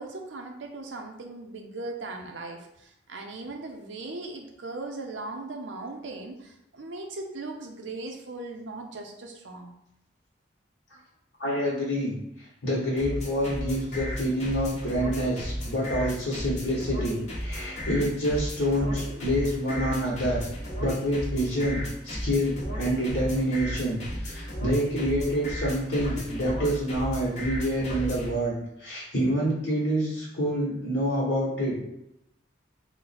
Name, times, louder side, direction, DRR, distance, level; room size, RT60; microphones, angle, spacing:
voice 1, 0.0-9.7, right 2 dB, 80° right, 3 dB, 0.6 m, -38 dB
voice 2, 11.4-12.2 12.6-20.4 20.8-28.5 28.8-31.7, equal, 60° left, -8 dB, 1.2 m, -27 dB
sound 1, 13.0-28.3, equal, 40° left, 1.0 m, -34 dB
3.9 x 2.2 x 4.1 m, 0.82 s
head